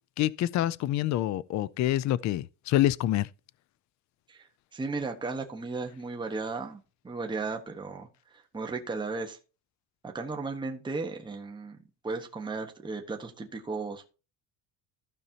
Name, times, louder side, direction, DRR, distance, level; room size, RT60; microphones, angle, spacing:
voice 1, 0.2-3.3, left 13 dB, 45° left, 0.4 m, -27 dB
voice 2, 4.7-8.1 8.3-9.4 10.0-11.8 12.0-14.1, right 3 dB, 10° right, 1.2 m, -35 dB
15.0 x 5.4 x 2.8 m
cardioid pair, 145°, 42 cm